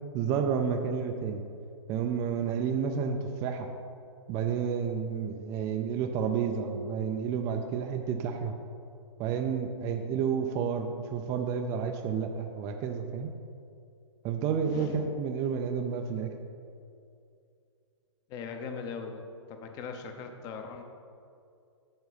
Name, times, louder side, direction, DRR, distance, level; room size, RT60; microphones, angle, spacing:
voice 1, 0.1-1.4 1.9-3.7 4.3-8.5 9.2-13.3 14.2-16.3, right 6 dB, 20° right, 4 dB, 0.3 m, -30 dB
voice 2, 14.6-15.1 18.3-19.2 19.5-20.8, left 5 dB, 25° left, 5 dB, 0.7 m, -39 dB
7.7 x 7.1 x 4.0 m, 2.4 s
hypercardioid pair, 150°, 16 cm